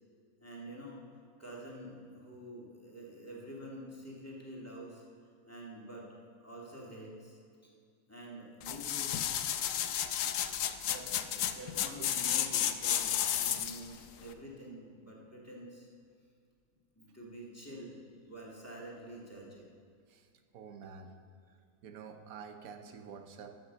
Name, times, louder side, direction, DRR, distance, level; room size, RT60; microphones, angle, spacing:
voice 1, 0.4-5.0 5.5-7.7 8.1-9.1 10.8-15.9 16.9-18.0 18.2-19.7, right 1 dB, 10° left, -4 dB, 1.9 m, -48 dB
sound 1, 8.6-13.9 14.3-14.4, left 10 dB, 75° left, 0.9 m, -32 dB
voice 2, 20.5-21.1 21.8-23.5, right 6 dB, 75° right, 6 dB, 1.3 m, -48 dB
13.5 x 5.9 x 6.7 m, 2.2 s
omnidirectional pair, 1.5 m